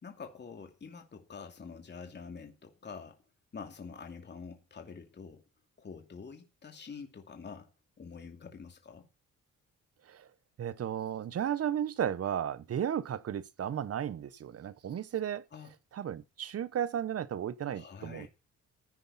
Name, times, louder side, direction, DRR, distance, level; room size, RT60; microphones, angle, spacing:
voice 1, 0.0-3.2 3.5-5.4 5.8-7.7 8.0-9.1 15.5-15.7 17.7-18.3, left 5 dB, 35° left, 2.6 m, -46 dB
voice 2, 10.6-15.4 15.9-18.3, right 9 dB, 50° right, 1.0 m, -34 dB
15.5 x 9.9 x 4.2 m
cardioid pair, 90°, 30 cm